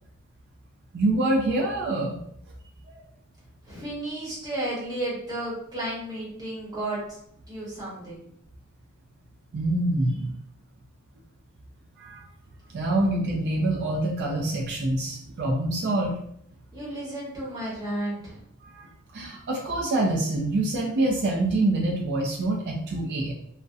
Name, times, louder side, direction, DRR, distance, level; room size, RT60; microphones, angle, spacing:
voice 1, 0.9-2.2 2.9-3.0 9.5-10.3 12.0-12.2 12.7-16.2 18.6-23.3, right 2 dB, 50° right, -2 dB, 0.4 m, -26 dB
voice 2, 3.7-7.2 7.5-8.2 16.7-18.4, right 1 dB, 15° right, -7 dB, 0.9 m, -33 dB
2.6 x 2.0 x 2.3 m, 0.72 s
head